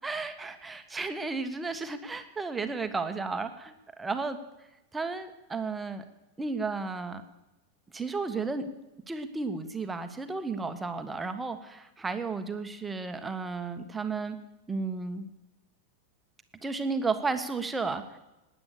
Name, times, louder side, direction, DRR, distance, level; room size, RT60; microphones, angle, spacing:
voice 1, 0.0-4.4 4.9-6.0 6.4-7.2 7.9-8.7 9.1-14.4 14.7-15.3 16.6-18.2, right 4 dB, 10° right, 8 dB, 1.4 m, -33 dB
18.0 x 10.0 x 6.8 m, 0.99 s
figure-of-eight pair, 90°, 0 cm